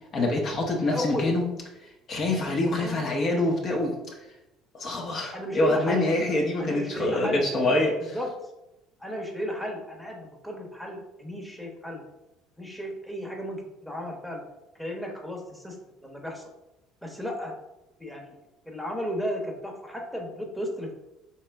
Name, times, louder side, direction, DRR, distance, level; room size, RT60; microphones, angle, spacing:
voice 1, 0.1-1.4 2.1-4.0 4.7-8.2, left 2 dB, 50° left, 0 dB, 0.9 m, -25 dB
voice 2, 0.8-1.3 2.7-3.1 5.3-6.1 6.6-7.5 8.0-8.3 9.0-12.0 12.6-14.4 14.8-15.8 16.0-16.4 17.0-17.5 18.0-18.3 18.7-20.9, equal, ahead, 0 dB, 1.0 m, -34 dB
4.1 x 2.9 x 3.4 m, 0.95 s
hypercardioid pair, 75°, 0 cm